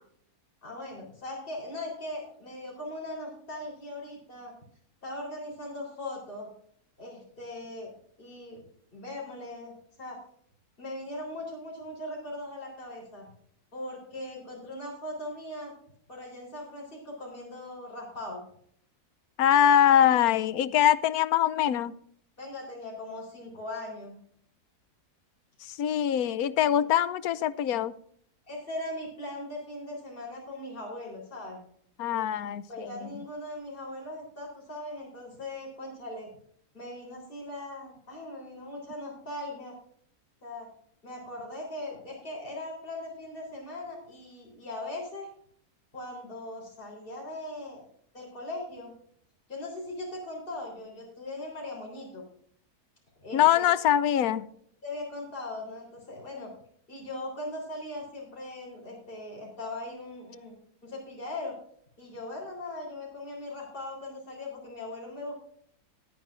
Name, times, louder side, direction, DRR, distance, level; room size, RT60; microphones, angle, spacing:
voice 1, 0.6-4.5 5.0-6.5 7.0-7.9 8.2-8.6 8.9-9.7 10.0-10.2 10.8-13.3 13.7-15.7 16.1-18.4 22.4-24.2 28.5-31.6 32.7-36.3 36.7-39.7 40.4-40.7 41.0-45.3 45.9-47.9 48.1-48.9 49.5-52.2 53.2-53.6 54.8-56.5 56.9-60.6 60.8-61.5 62.0-65.4, left 1 dB, 35° left, -2 dB, 3.9 m, -39 dB
voice 2, 19.4-21.9 25.8-27.9 32.0-32.9 53.3-54.5, left 10 dB, 75° left, 16 dB, 1.1 m, -23 dB
19.5 x 9.1 x 2.5 m, 0.64 s
omnidirectional pair, 1.6 m